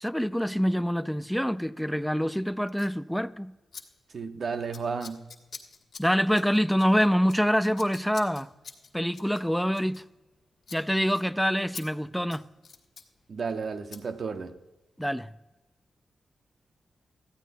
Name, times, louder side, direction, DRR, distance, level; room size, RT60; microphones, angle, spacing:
voice 1, 0.0-3.5 6.0-8.5 8.9-10.0 10.7-12.5 15.0-15.3, equal, ahead, 0.4 m, -26 dB
Scissors, 2.7-3.0 3.7-3.8 4.1-4.4 4.7-10.4 10.6-10.8 11.1-11.2 11.7-11.8 12.2-13.1 13.9-14.0, left 5 dB, 70° left, 1.4 m, -46 dB
voice 2, 4.1-5.3 13.3-14.5, right 5 dB, 60° right, 0.8 m, -33 dB
14.0 x 9.1 x 4.0 m
cardioid pair, 70°, 0 cm